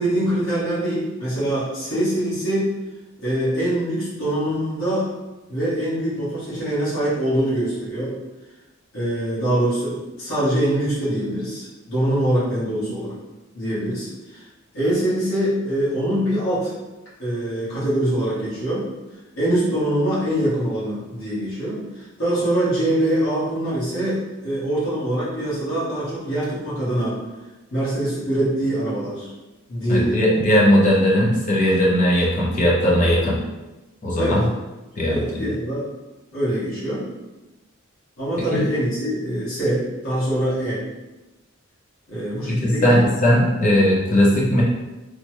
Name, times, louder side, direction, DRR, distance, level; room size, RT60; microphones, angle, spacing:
voice 1, 0.0-2.7 3.2-5.1 5.5-8.1 8.9-13.1 13.5-14.4 14.7-16.7 17.2-18.9 19.4-27.2 27.7-29.3 29.7-30.3 34.2-34.4 35.1-35.9 36.3-37.0 38.2-40.8 42.1-43.0, right 1 dB, 65° left, -11 dB, 1.4 m, -23 dB
voice 2, 29.9-33.4 34.0-34.4 35.0-35.3 38.5-38.7 42.5-44.6, equal, 35° left, -4 dB, 0.6 m, -18 dB
3.2 x 2.1 x 3.0 m, 1.1 s
head